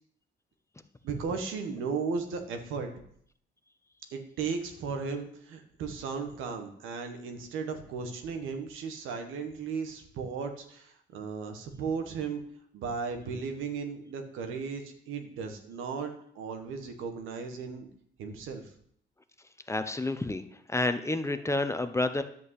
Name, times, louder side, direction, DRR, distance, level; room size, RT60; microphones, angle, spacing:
voice 1, 1.0-2.9 4.1-12.4 12.7-17.9 18.2-18.7, right 5 dB, 90° right, 6 dB, 1.7 m, -36 dB
voice 2, 19.7-20.4 20.7-22.2, left 2 dB, 15° left, 9 dB, 0.9 m, -29 dB
10.5 x 5.3 x 8.4 m, 0.65 s
cardioid pair, 90°, 20 cm